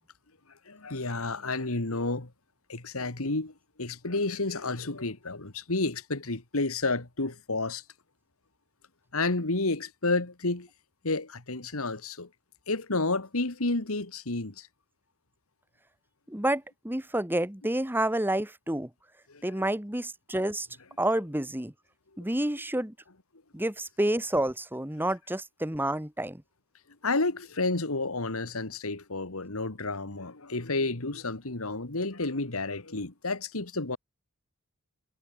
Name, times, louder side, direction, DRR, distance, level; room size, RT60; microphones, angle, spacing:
voice 1, 0.7-2.3 2.7-7.8 9.1-10.7 11.0-12.3 12.7-14.7 19.3-19.7 27.0-34.0, left 3 dB, 75° left, 2.1 m, -31 dB
voice 2, 16.3-18.9 19.4-20.7 21.0-21.7 22.2-22.9 23.5-26.4, right 1 dB, 10° right, 1.6 m, -29 dB
head